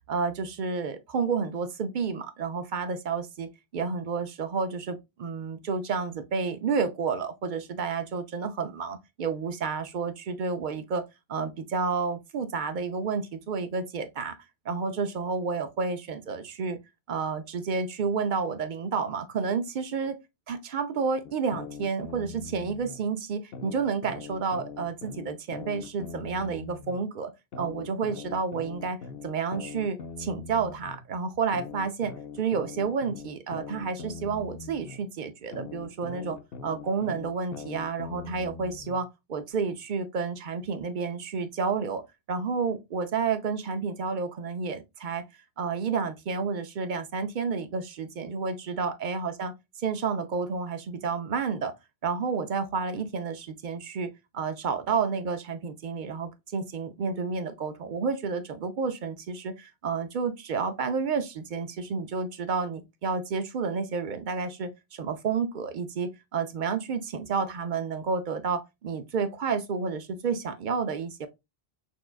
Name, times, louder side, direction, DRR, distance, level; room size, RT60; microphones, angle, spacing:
voice 1, 0.1-14.4 14.7-16.8 17.1-20.2 20.5-29.0 29.2-45.2 45.6-49.5 49.8-51.7 52.0-71.3, right 5 dB, 55° right, 0.6 m, -30 dB
sound 1, 21.2-23.0 23.5-27.0 27.5-31.0 31.5-35.0 35.5-39.0, left 5 dB, 65° left, 0.8 m, -41 dB
6.0 x 2.3 x 2.4 m
omnidirectional pair, 1.1 m